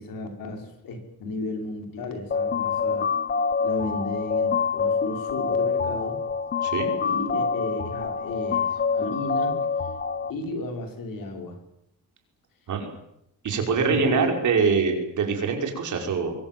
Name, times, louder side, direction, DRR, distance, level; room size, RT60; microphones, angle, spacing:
voice 1, 0.0-3.1 3.6-6.2 7.0-9.6 10.3-11.6 13.7-14.4, left 2 dB, 60° left, 4 dB, 5.6 m, -33 dB
sound 1, 2.3-10.3, left 5 dB, 25° left, 0.9 m, -26 dB
voice 2, 6.6-6.9 12.7-12.9 13.4-16.3, right 5 dB, 50° right, 3 dB, 5.6 m, -24 dB
24.0 x 23.5 x 7.7 m, 0.77 s
cardioid pair, 170°, 38 cm